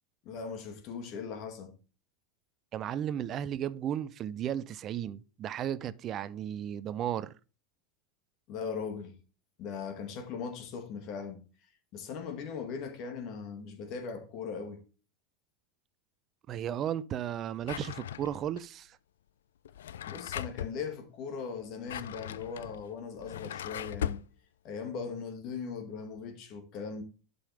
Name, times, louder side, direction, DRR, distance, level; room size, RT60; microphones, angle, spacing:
voice 1, 0.3-1.8 8.5-9.2 9.6-11.4 11.9-14.8 20.1-24.2 24.6-27.0, left 5 dB, 50° left, 1.9 m, -39 dB
voice 2, 2.7-7.3 16.5-19.0, right 10 dB, 40° right, 0.5 m, -34 dB
Drawer open or close, 17.6-18.6 19.6-20.8 21.6-24.3, left 10 dB, 75° left, 0.4 m, -39 dB
11.5 x 5.4 x 3.4 m
hypercardioid pair, 85°, 0 cm